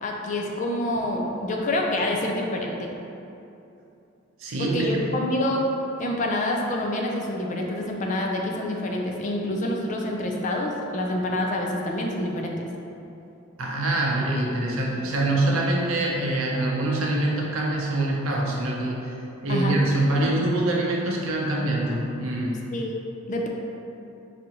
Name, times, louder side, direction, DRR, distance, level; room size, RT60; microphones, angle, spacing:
voice 1, 0.0-2.9 4.6-5.6 6.0-12.7 19.5-19.8 22.7-22.9 23.3-23.5, left 1 dB, 35° left, 0 dB, 0.4 m, -27 dB
voice 2, 4.4-5.1 13.6-19.0 19.4-22.6, right 2 dB, 75° right, -2 dB, 0.6 m, -24 dB
4.8 x 2.6 x 2.8 m, 2.8 s
head